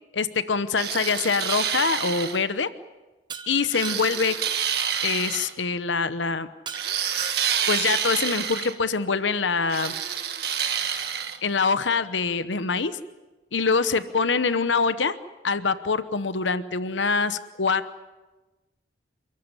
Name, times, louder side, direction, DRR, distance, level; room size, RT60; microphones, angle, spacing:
voice 1, 0.1-2.7 3.5-4.4 5.0-6.5 7.7-9.9 11.4-13.0 13.5-15.1 15.4-18.0, left 4 dB, 90° left, 13 dB, 1.0 m, -24 dB
sound 1, 0.8-2.4 3.7-5.5 6.7-8.7 9.7-11.4, right 8 dB, 60° right, 1.8 m, -28 dB
Shatter, 3.3-4.4 6.7-7.9, right 6 dB, 25° right, 1.1 m, -39 dB
29.0 x 14.5 x 9.8 m, 1.2 s
head